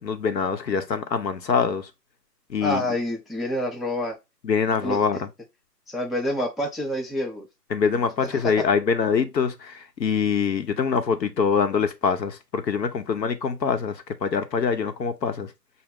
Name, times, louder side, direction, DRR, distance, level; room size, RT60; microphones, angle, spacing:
voice 1, 0.0-1.9 2.5-2.8 4.4-5.3 7.7-15.5, left 6 dB, 85° left, 0.8 m, -24 dB
voice 2, 2.6-4.2 4.8-5.0 5.9-7.5 8.2-8.5, left 1 dB, ahead, 0.3 m, -27 dB
4.8 x 2.1 x 3.6 m
hypercardioid pair, 170°, 49 cm